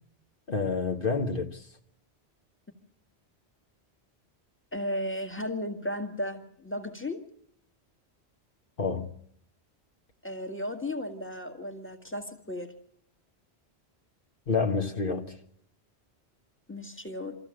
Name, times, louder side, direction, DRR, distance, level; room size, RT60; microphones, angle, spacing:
voice 1, 0.5-1.7 8.8-9.2 14.5-15.4, left 4 dB, 55° left, 1.5 m, -28 dB
voice 2, 4.7-7.2 10.2-12.7 16.7-17.4, left 1 dB, 10° left, 1.9 m, -35 dB
25.5 x 14.0 x 7.7 m
omnidirectional pair, 1.1 m